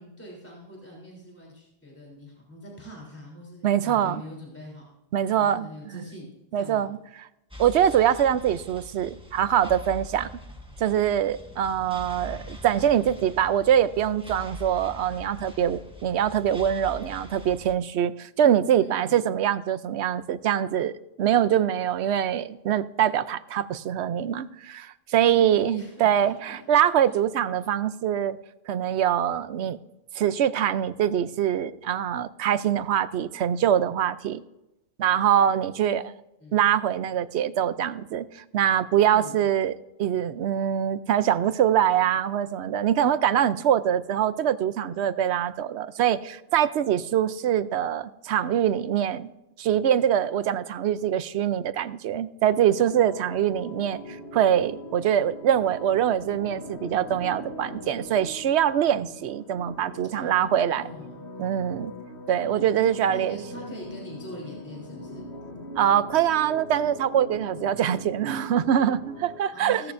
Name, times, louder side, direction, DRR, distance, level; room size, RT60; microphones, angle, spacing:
voice 1, 0.0-4.8 5.3-6.9 18.7-19.3 25.3-26.6 27.0-27.2 35.8-36.1 36.4-36.6 38.9-39.4 60.1-61.3 62.8-65.3 69.5-69.9, equal, 10° left, -3 dB, 3.3 m, -43 dB
voice 2, 3.6-4.2 5.1-6.1 6.5-7.0 7.6-10.3 10.8-20.9 21.2-28.4 28.7-29.8 30.1-34.4 35.0-36.0 36.5-39.7 40.0-49.3 49.6-54.0 54.3-60.8 61.4-61.9 62.3-63.4 65.8-69.9, right 10 dB, 80° right, 14 dB, 0.9 m, -24 dB
sound 1, 7.5-17.7, left 2 dB, 5° right, 1.4 m, -43 dB
sound 2, 52.6-69.4, left 1 dB, 85° left, 1.5 m, -41 dB
16.5 x 13.5 x 2.6 m, 0.91 s
omnidirectional pair, 1.1 m